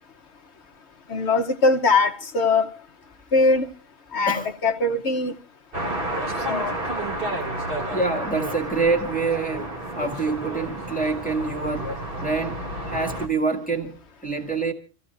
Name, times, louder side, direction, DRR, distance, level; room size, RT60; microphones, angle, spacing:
voice 1, 1.1-2.7 3.3-3.7 4.1-5.3 6.5-6.8, left 3 dB, 75° left, 1.3 m, -21 dB
sound 1, 5.7-13.3, right 1 dB, 55° right, 2.7 m, -30 dB
voice 2, 7.9-9.7 9.9-14.7, right 4 dB, 5° left, 2.0 m, -26 dB
27.5 x 15.5 x 2.5 m
omnidirectional pair, 1.1 m